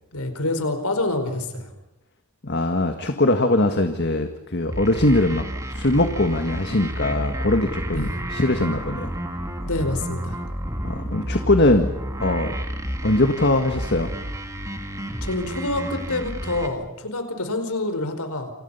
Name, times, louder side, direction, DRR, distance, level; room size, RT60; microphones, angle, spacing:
voice 1, 0.1-1.7 7.9-8.2 9.6-10.4 15.2-18.5, left 2 dB, 80° left, 8 dB, 4.7 m, -27 dB
voice 2, 2.4-9.1 10.8-11.9 12.2-12.5 13.0-14.1, left 2 dB, 50° left, 6 dB, 1.8 m, -21 dB
sound 1, 4.7-16.7, equal, 15° right, 2.8 m, -30 dB
28.5 x 28.0 x 5.7 m, 0.94 s
head